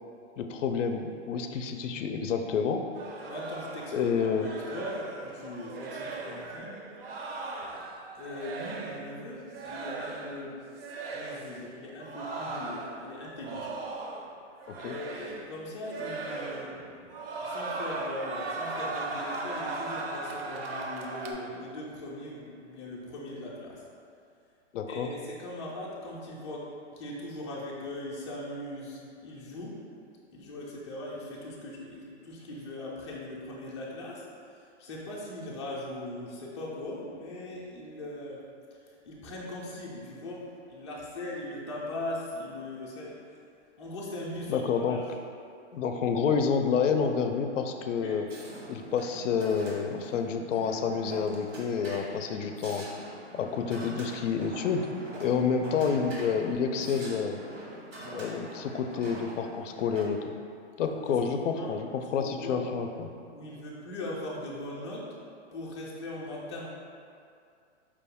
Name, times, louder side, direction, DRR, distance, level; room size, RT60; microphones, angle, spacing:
voice 1, 0.4-2.9 3.9-4.5 14.8-15.0 24.7-25.1 44.5-45.0 45.7-48.3 48.7-52.8 53.4-54.9 55.2-57.4 58.1-60.3 60.8-63.1, left 6 dB, 90° left, 5 dB, 0.5 m, -29 dB
sound 1, 2.9-9.1 9.5-10.4 10.7-11.5 12.0-14.3 14.6-15.5 15.8-16.8 17.1-21.3, right 3 dB, 55° right, 0.5 m, -38 dB
voice 2, 3.3-6.8 8.2-10.5 11.1-13.8 14.8-17.1 17.4-23.8 24.9-26.7 27.0-29.8 30.3-34.3 34.8-38.4 39.0-43.2 43.8-45.0 47.9-48.1 53.6-53.8 58.0-58.2 60.8-60.9 61.3-61.7 62.2-62.7 63.3-65.1 65.5-66.7, left 1 dB, 25° left, -5 dB, 0.4 m, -40 dB
sound 2, 48.3-60.0, right 1 dB, 85° right, 1.1 m, -44 dB
4.8 x 2.2 x 3.5 m, 2.3 s
hypercardioid pair, 160°, 36 cm